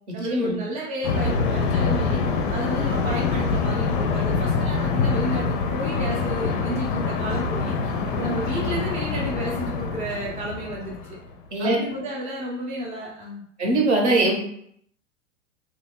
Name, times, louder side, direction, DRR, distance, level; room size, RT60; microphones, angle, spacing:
voice 1, 0.1-2.2 2.5-7.9 8.2-11.0 11.6-13.4, right 1 dB, 20° right, -3 dB, 0.6 m, -31 dB
sound 1, 1.0-11.3, left 4 dB, 45° left, 0.5 m, -25 dB
voice 2, 13.6-14.4, right 2 dB, 60° right, 0 dB, 1.2 m, -21 dB
2.9 x 2.3 x 3.6 m, 0.67 s
figure-of-eight pair, 90°, 39 cm